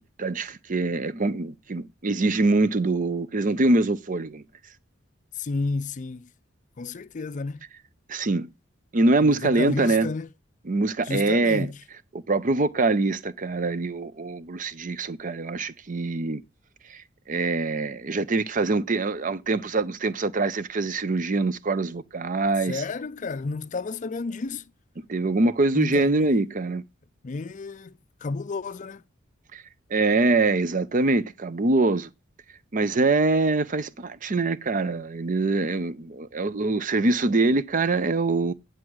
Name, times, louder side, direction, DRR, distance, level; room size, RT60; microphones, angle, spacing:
voice 1, 0.2-4.4 8.1-8.5 8.9-10.1 10.7-11.7 12.3-16.4 16.9-17.0 17.3-22.8 25.1-26.8 29.5-29.6 29.9-32.1 32.7-38.5, right 3 dB, 45° right, 0.6 m, -24 dB
voice 2, 5.3-6.3 6.8-7.6 9.2-10.3 11.0-11.8 22.6-24.7 25.7-26.2 27.2-29.0, left 3 dB, 40° left, 0.5 m, -31 dB
9.7 x 4.7 x 6.2 m
head